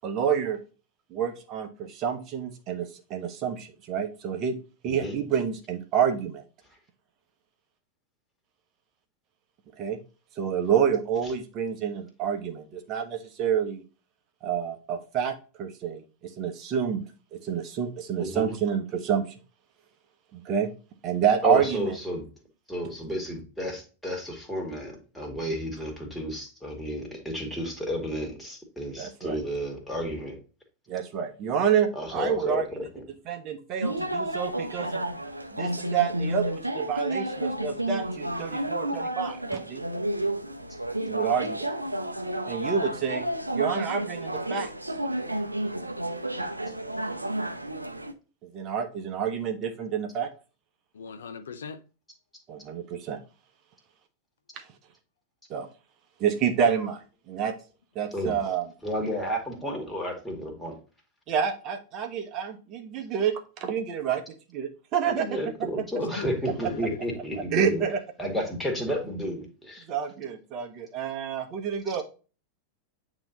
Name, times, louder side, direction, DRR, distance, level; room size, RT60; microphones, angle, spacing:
voice 1, 0.0-0.6 1.1-4.6 4.8-6.4 9.8-10.0 10.4-13.8 14.4-16.0 16.4-17.0 17.3-19.2 20.3-20.7 21.0-22.0 29.0-29.4 30.9-32.7 33.3-35.0 35.5-39.8 41.1-41.8 42.5-43.2 43.5-44.7 48.5-50.3 52.5-53.2 55.5-55.7 56.2-57.0 57.3-57.5 57.9-58.7 61.3-64.2 64.5-65.3 67.5-68.0 69.9-72.0, right 8 dB, 35° right, 1.0 m, -28 dB
voice 2, 18.2-18.5 21.4-22.2 22.7-30.4 32.0-33.0 58.1-58.3 58.8-60.8 65.1-67.8 68.2-69.8, equal, 5° left, 2.1 m, -32 dB
sound 1, 33.8-48.1, right 1 dB, 85° right, 0.6 m, -31 dB
voice 3, 50.9-51.8 66.0-67.0, left 6 dB, 65° left, 0.6 m, -39 dB
9.0 x 3.0 x 3.8 m
figure-of-eight pair, 90°, 0 cm